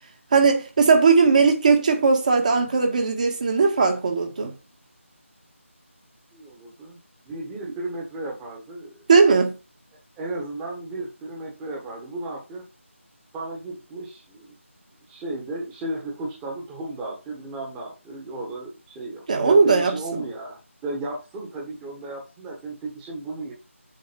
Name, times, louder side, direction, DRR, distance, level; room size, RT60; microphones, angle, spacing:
voice 1, 0.3-4.5 9.1-9.6 19.3-20.0, right 4 dB, 35° right, 1.8 m, -18 dB
voice 2, 6.3-7.0 7.2-9.1 10.2-12.6 13.3-14.5 15.1-23.5, right 2 dB, 10° right, 1.5 m, -34 dB
7.8 x 6.4 x 5.3 m
figure-of-eight pair, 165°, 7 cm